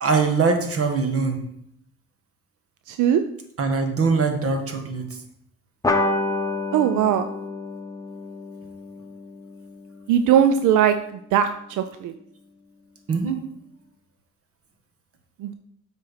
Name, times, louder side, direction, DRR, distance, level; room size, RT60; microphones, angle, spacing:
voice 1, 0.0-1.4 3.6-5.0 13.1-13.4, right 4 dB, 50° right, 5 dB, 1.7 m, -22 dB
voice 2, 2.9-3.2 6.7-7.3 10.1-12.1 15.4-15.5, right 9 dB, 85° right, 9 dB, 0.5 m, -20 dB
sound 1, 5.8-10.8, left 2 dB, 10° left, 1.1 m, -29 dB
7.7 x 4.5 x 5.6 m, 0.74 s
cardioid pair, 90°, 30 cm